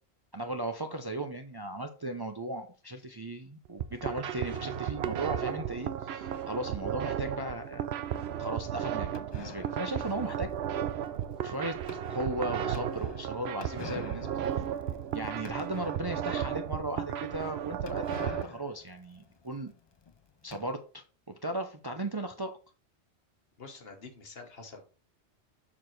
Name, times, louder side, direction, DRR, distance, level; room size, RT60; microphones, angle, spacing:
voice 1, 0.3-7.9 8.4-10.5 11.4-11.8 12.1-14.6 15.1-19.7 20.4-22.6, right 1 dB, 30° right, 6 dB, 0.5 m, -36 dB
sound 1, 3.7-18.4, right 9 dB, 75° right, 0.8 m, -34 dB
sound 2, 9.1-16.4 16.8-16.9 17.1-17.2 17.9-20.6, left 5 dB, 40° left, 0.3 m, -48 dB
voice 2, 23.6-24.8, left 4 dB, 60° left, 5 dB, 1.5 m, -47 dB
6.8 x 6.0 x 3.2 m, 0.35 s
omnidirectional pair, 1.1 m